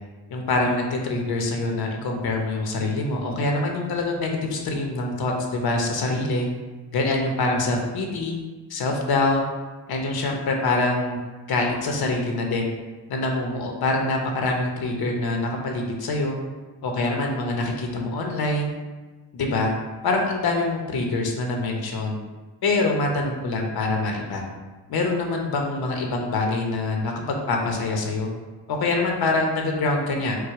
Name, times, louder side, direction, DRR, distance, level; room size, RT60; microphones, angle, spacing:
voice 1, 0.3-6.5 6.9-8.4 8.7-9.4 9.9-11.2 11.5-12.7 13.1-16.4 16.8-18.7 19.3-19.7 20.0-22.2 22.6-24.4 24.9-27.1 27.5-28.3 28.7-30.4, left 2 dB, 65° left, 1 dB, 1.0 m, -25 dB
4.8 x 2.2 x 4.7 m, 1.3 s
cardioid pair, 90°, 40 cm